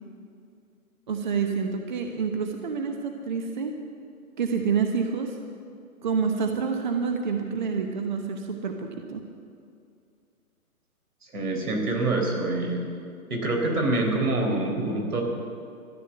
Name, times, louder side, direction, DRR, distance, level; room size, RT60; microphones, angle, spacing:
voice 1, 1.1-3.7 4.4-5.4 6.0-9.2, right 6 dB, 30° right, 4 dB, 0.9 m, -28 dB
voice 2, 11.3-12.8 13.3-15.2, right 2 dB, 90° right, 1 dB, 4.3 m, -25 dB
13.5 x 10.0 x 8.0 m, 2.4 s
hypercardioid pair, 165°, 44 cm